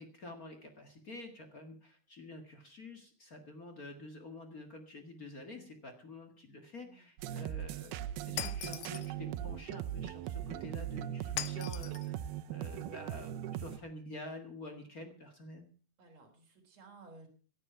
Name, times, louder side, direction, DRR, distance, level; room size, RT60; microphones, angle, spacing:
voice 1, 0.0-12.2 12.5-15.7, left 2 dB, 40° left, 5 dB, 1.3 m, -48 dB
voice 2, 6.8-7.1 16.0-17.3, right 3 dB, 45° right, 2 dB, 4.5 m, -56 dB
sound 1, 7.2-13.8, right 11 dB, 85° right, 2.7 m, -39 dB
Shatter, 8.4-9.1 11.4-12.1, left 14 dB, 80° left, 2.7 m, -40 dB
17.0 x 11.0 x 5.7 m, 0.40 s
omnidirectional pair, 4.4 m